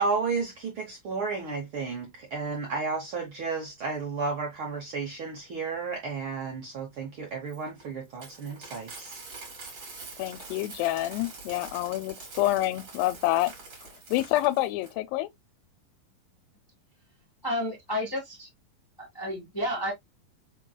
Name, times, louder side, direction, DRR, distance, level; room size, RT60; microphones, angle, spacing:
voice 1, 0.0-9.2, right 4 dB, 80° right, 1.1 m, -32 dB
Coin (dropping), 7.5-14.9, right 3 dB, 40° right, 3.5 m, -45 dB
voice 2, 10.2-13.5 14.1-15.3, left 16 dB, 85° left, 2.3 m, -27 dB
voice 3, 17.4-18.5 19.0-19.9, left 1 dB, 30° left, 0.4 m, -31 dB
5.8 x 3.8 x 2.2 m
omnidirectional pair, 4.0 m